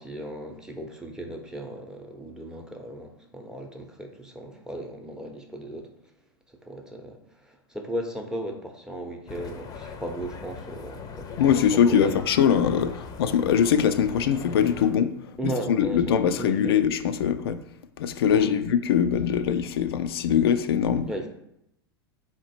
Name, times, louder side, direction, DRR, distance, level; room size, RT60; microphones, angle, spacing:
voice 1, 0.0-5.9 6.6-12.3 15.4-16.8 18.3-18.7 21.1-21.3, right 1 dB, 5° right, 3 dB, 0.8 m, -36 dB
sound 1, 9.3-14.9, left 5 dB, 30° left, 0.6 m, -40 dB
voice 2, 11.4-15.1 15.7-17.6 18.0-21.1, left 8 dB, 75° left, 9 dB, 0.4 m, -22 dB
4.1 x 2.9 x 4.3 m, 0.78 s
hypercardioid pair, 100°, 13 cm